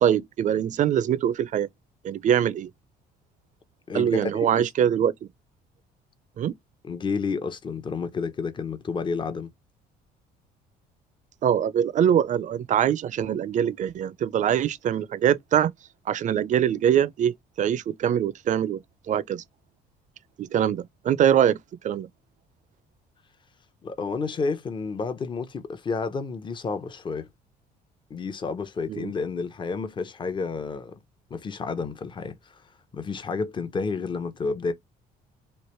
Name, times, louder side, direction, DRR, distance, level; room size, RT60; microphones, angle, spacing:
voice 1, 0.0-1.7 2.0-2.7 3.9-5.1 6.4-6.5 11.4-15.7 16.1-18.8 19.1-19.4 20.4-21.6 21.8-22.1 28.9-29.1, right 9 dB, 45° right, 0.5 m, -23 dB
voice 2, 3.9-4.9 6.8-9.5 23.8-27.3 28.1-30.9 31.3-32.6 32.9-34.7, left 4 dB, 30° left, 0.7 m, -30 dB
3.2 x 2.5 x 4.3 m
cardioid pair, 110°, 17 cm